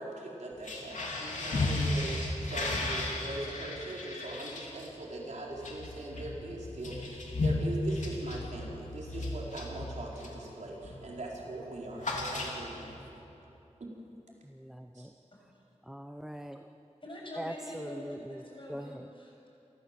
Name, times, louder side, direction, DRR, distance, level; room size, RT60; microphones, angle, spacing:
voice 1, 0.0-12.9 13.8-13.9 14.9-15.1, right 2 dB, 75° right, -3 dB, 4.6 m, -41 dB
sound 1, 0.5-10.5 10.8-11.1 11.4-12.9, left 2 dB, 85° left, 3.2 m, -35 dB
voice 2, 14.4-15.1 15.8-16.7 17.4-18.4 18.7-19.1, equal, 5° right, 7 dB, 0.7 m, -42 dB
voice 3, 17.0-18.0 18.3-19.5, left 1 dB, 45° left, -2 dB, 6.5 m, -45 dB
28.0 x 14.5 x 7.6 m, 2.9 s
wide cardioid pair, 85°, 12 cm